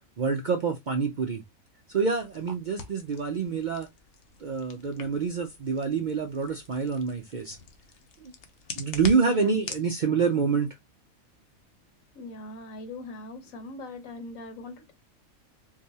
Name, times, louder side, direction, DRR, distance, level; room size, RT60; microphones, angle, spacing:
voice 1, 0.2-1.4 1.9-3.9 4.4-7.6 8.2-8.3 8.8-10.7, right 5 dB, 60° right, 0.5 m, -27 dB
sound 1, 1.9-9.9, left 4 dB, 65° left, 0.9 m, -44 dB
voice 2, 9.2-9.6 12.1-14.9, left 2 dB, 80° left, 1.4 m, -40 dB
4.7 x 2.3 x 2.7 m
omnidirectional pair, 1.4 m